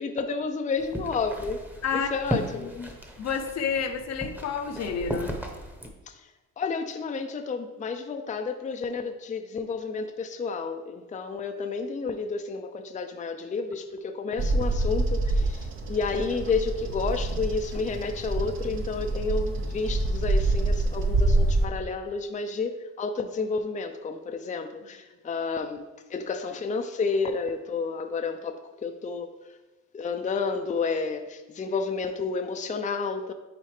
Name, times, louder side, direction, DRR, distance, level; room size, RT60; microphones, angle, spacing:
voice 1, 0.0-1.6 1.9-2.7 6.6-29.3 29.9-33.3, left 4 dB, 25° left, 5 dB, 0.5 m, -31 dB
sound 1, 0.8-5.9, equal, 5° right, 1.0 m, -36 dB
voice 2, 2.6-2.9 3.2-5.4, left 6 dB, 60° left, 7 dB, 0.8 m, -30 dB
Bird vocalization bird call bird song, 14.4-21.6, right 2 dB, 40° right, 0.8 m, -26 dB
8.9 x 4.1 x 3.3 m, 1.1 s
cardioid pair, 90°, 30 cm